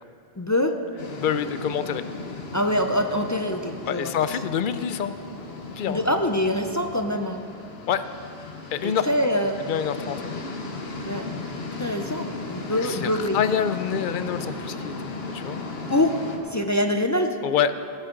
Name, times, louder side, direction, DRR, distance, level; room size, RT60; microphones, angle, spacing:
voice 1, 0.4-0.8 2.5-4.1 5.9-7.4 8.8-9.6 11.1-11.3 11.8-13.4 15.9-16.2 16.5-17.4, left 1 dB, 25° left, 5 dB, 0.4 m, -24 dB
sound 1, 1.0-16.4, left 3 dB, 80° left, 1.4 m, -36 dB
voice 2, 1.2-2.1 3.9-5.1 5.7-6.0 7.9-8.0 8.7-9.1 9.7-10.3 12.7-15.6 17.4-17.7, left 8 dB, 60° left, 12 dB, 0.7 m, -26 dB
18.5 x 9.5 x 3.8 m, 2.8 s
omnidirectional pair, 1.1 m